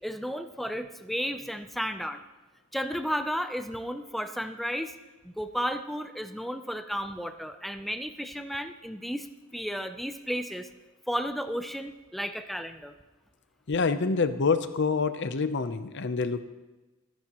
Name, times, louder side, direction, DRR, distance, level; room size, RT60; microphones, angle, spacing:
voice 1, 0.0-2.2 2.7-4.9 5.2-9.3 9.5-10.7 11.1-12.9, equal, ahead, 8 dB, 0.5 m, -33 dB
voice 2, 13.7-16.4, left 4 dB, 55° left, 11 dB, 0.7 m, -26 dB
21.5 x 10.5 x 3.0 m, 1.1 s
head